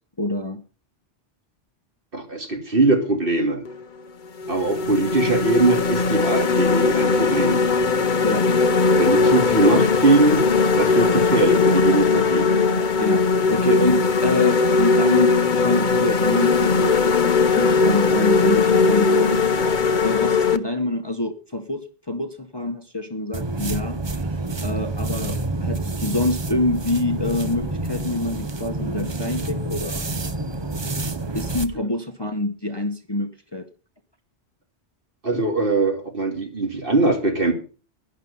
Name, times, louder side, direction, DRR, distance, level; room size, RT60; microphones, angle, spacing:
voice 1, 0.2-0.6 6.2-6.3 8.2-8.5 13.0-19.4 20.0-24.0 24.6-30.1 31.3-33.7, left 2 dB, 25° left, 7 dB, 1.0 m, -26 dB
voice 2, 2.1-3.6 4.5-7.6 9.0-10.5 10.8-12.5 35.2-37.5, right 2 dB, 55° right, 4 dB, 2.6 m, -21 dB
sound 1, 3.7-3.8 4.4-20.6, left 4 dB, 50° left, 0.9 m, -19 dB
sound 2, 23.3-31.7, right 2 dB, 25° right, 0.8 m, -28 dB
11.5 x 11.0 x 5.4 m, 0.38 s
omnidirectional pair, 1.1 m